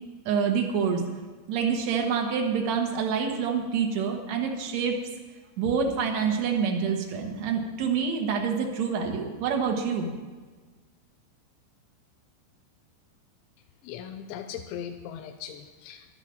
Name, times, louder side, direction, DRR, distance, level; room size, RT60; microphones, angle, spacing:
voice 1, 0.3-1.0 1.5-5.0 5.6-10.1, right 6 dB, 80° right, 1 dB, 1.6 m, -27 dB
voice 2, 13.8-16.1, left 9 dB, 85° left, 6 dB, 3.0 m, -39 dB
11.5 x 10.5 x 7.4 m, 1.4 s
omnidirectional pair, 5.2 m